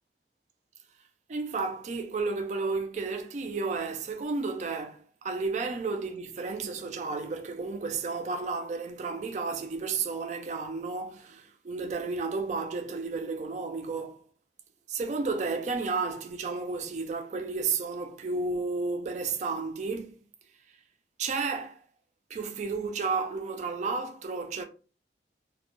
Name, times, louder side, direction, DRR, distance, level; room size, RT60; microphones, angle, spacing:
voice 1, 1.3-14.2 14.9-20.2 21.2-21.8 22.3-24.6, right 4 dB, 40° right, 0.3 m, -32 dB
2.1 x 2.0 x 2.9 m
head